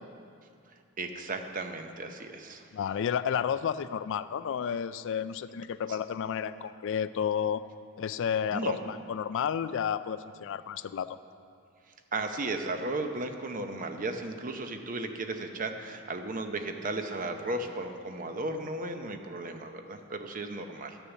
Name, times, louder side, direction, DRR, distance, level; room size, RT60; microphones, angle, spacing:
voice 1, 1.0-2.6 5.9-6.0 8.5-8.8 12.1-21.0, right 2 dB, 40° right, 6 dB, 0.7 m, -35 dB
voice 2, 2.7-7.6 8.0-11.2, left 8 dB, 60° left, 13 dB, 0.3 m, -31 dB
12.5 x 6.9 x 7.1 m, 2.4 s
head